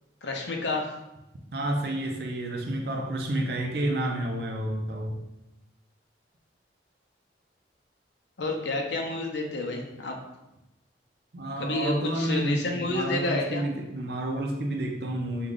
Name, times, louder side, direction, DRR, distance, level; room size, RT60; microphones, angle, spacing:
voice 1, 0.2-0.9 8.4-10.2 11.6-13.6, left 2 dB, 75° left, 2 dB, 0.7 m, -30 dB
voice 2, 1.5-5.2 11.3-15.5, right 1 dB, 60° right, 3 dB, 0.5 m, -30 dB
4.9 x 2.3 x 3.8 m, 0.95 s
head